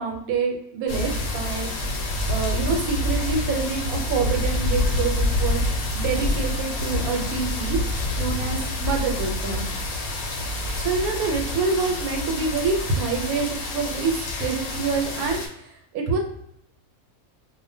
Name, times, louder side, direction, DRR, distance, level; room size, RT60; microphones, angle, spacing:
voice 1, 0.0-1.7 2.3-5.7 5.9-7.8 8.2-9.6 10.8-15.4 15.9-16.2, right 4 dB, 90° right, 2 dB, 1.1 m, -26 dB
sound 1, 0.9-15.5, left 1 dB, 85° left, 1.1 m, -27 dB
2.4 x 2.1 x 2.6 m, 0.72 s
omnidirectional pair, 1.5 m